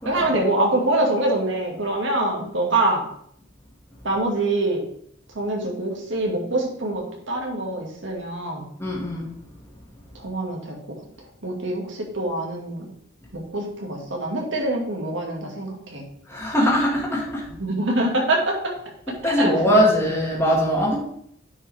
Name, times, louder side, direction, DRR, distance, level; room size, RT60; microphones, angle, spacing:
voice 1, 0.1-3.1 4.0-4.9 5.3-8.7 10.1-12.9 13.3-16.0 17.6-18.8 19.2-19.8, right 2 dB, 65° right, 0 dB, 2.0 m, -25 dB
voice 2, 8.8-9.3 16.3-17.5 19.2-21.0, equal, 15° left, -5 dB, 2.0 m, -21 dB
9.4 x 5.3 x 3.5 m, 0.68 s
head